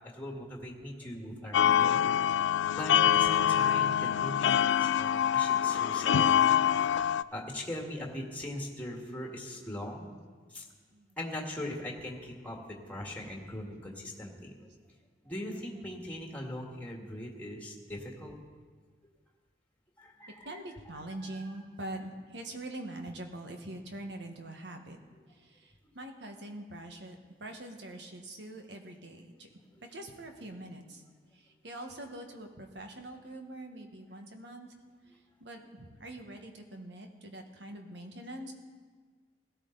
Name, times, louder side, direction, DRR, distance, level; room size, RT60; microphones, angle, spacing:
voice 1, 0.1-6.9 7.3-10.1 10.5-10.6 11.2-14.7 15.2-18.4 20.0-20.5 21.3-21.4 29.7-29.8, left 1 dB, 10° left, 0 dB, 1.9 m, -40 dB
sound 1, 1.5-7.2, left 9 dB, 85° left, 0.3 m, -25 dB
voice 2, 20.4-25.0 25.3-29.5 29.9-31.0 31.3-34.7 35.1-38.5, right 1 dB, 75° right, 4 dB, 1.5 m, -44 dB
17.0 x 13.0 x 4.0 m, 1.5 s
head